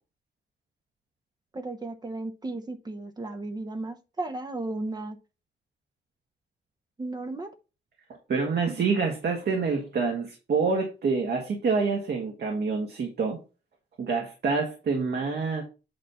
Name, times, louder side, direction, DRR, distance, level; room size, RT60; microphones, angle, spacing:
voice 1, 1.5-5.2 7.0-7.5, right 2 dB, 20° right, 0.9 m, -34 dB
voice 2, 8.3-13.4 14.0-15.6, right 4 dB, 60° right, 1.7 m, -27 dB
8.7 x 3.2 x 5.5 m
wide cardioid pair, 160°, 19 cm